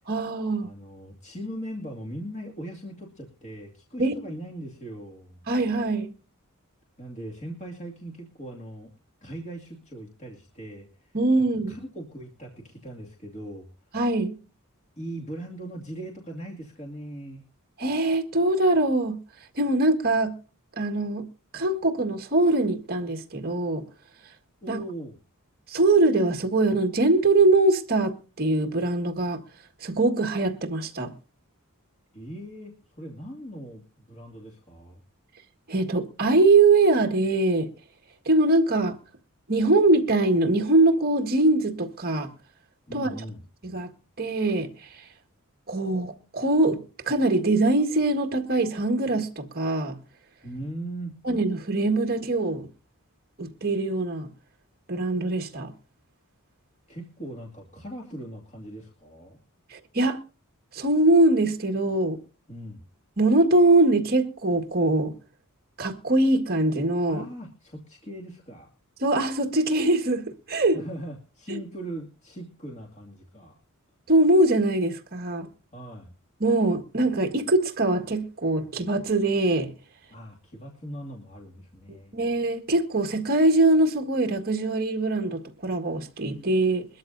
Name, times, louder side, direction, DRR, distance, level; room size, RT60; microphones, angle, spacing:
voice 1, 0.1-0.7 4.0-4.1 5.5-6.1 11.1-11.7 13.9-14.4 17.8-19.2 19.6-20.4 20.8-21.3 21.5-23.8 24.7-24.8 25.7-29.4 29.8-31.1 35.7-37.7 38.3-39.0 39.5-42.3 42.9-43.2 43.6-43.9 44.2-45.0 45.7-50.0 51.3-52.7 53.4-54.3 54.9-55.7 59.7-60.2 60.7-62.2 63.2-65.2 65.8-67.2 69.0-70.8 71.5-71.6 74.1-75.5 76.4-79.7 82.1-86.9, right 2 dB, 45° right, 1.8 m, -22 dB
voice 2, 0.6-5.5 7.0-8.9 9.2-11.2 11.7-13.7 15.0-17.4 24.6-25.2 32.1-35.0 42.9-43.4 50.4-51.2 56.9-59.4 62.5-62.9 67.1-68.7 70.7-73.6 75.7-76.1 80.1-82.1, right 1 dB, 30° left, 2.4 m, -39 dB
22.0 x 13.5 x 2.7 m
head